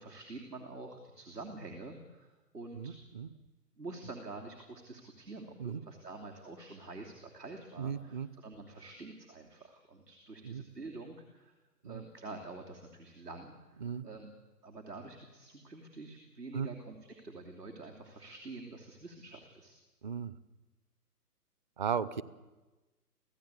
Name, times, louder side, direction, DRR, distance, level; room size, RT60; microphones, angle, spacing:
voice 1, 0.0-3.0 3.8-11.5 11.8-14.3 14.6-19.7, right 3 dB, 75° right, 1 dB, 3.1 m, -47 dB
voice 2, 2.7-3.3 5.6-5.8 7.8-8.3 10.4-10.6 11.8-12.0 13.8-14.1 16.5-16.7 20.0-20.3 21.8-22.2, right 7 dB, 30° right, 18 dB, 0.7 m, -36 dB
24.5 x 16.0 x 8.3 m, 1.2 s
figure-of-eight pair, 130°, 48 cm